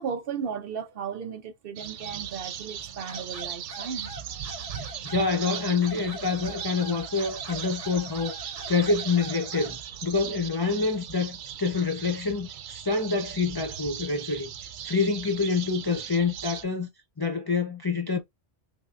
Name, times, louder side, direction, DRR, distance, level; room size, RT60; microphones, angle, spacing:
voice 1, 0.0-4.4, right 7 dB, 60° right, 0.7 m, -35 dB
sound 1, 1.8-16.6, right 9 dB, 85° right, 0.9 m, -38 dB
sound 2, 3.1-9.8, equal, 35° right, 1.1 m, -43 dB
voice 2, 5.0-8.4 8.7-14.5 14.8-16.9 17.2-18.2, left 4 dB, 30° left, 0.4 m, -27 dB
5.5 x 2.1 x 2.4 m
omnidirectional pair, 1.2 m